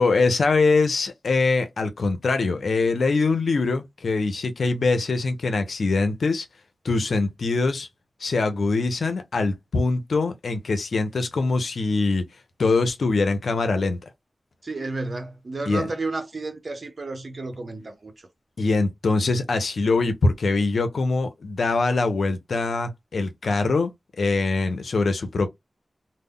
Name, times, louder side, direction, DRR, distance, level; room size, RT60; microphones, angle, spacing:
voice 1, 0.0-6.5 6.8-7.9 8.2-12.2 12.6-14.0 15.7-15.9 18.6-23.9 24.2-25.5, left 3 dB, 80° left, 0.5 m, -23 dB
voice 2, 14.6-18.3, right 3 dB, 60° right, 0.7 m, -32 dB
2.1 x 2.1 x 3.6 m
cardioid pair, 45°, 0 cm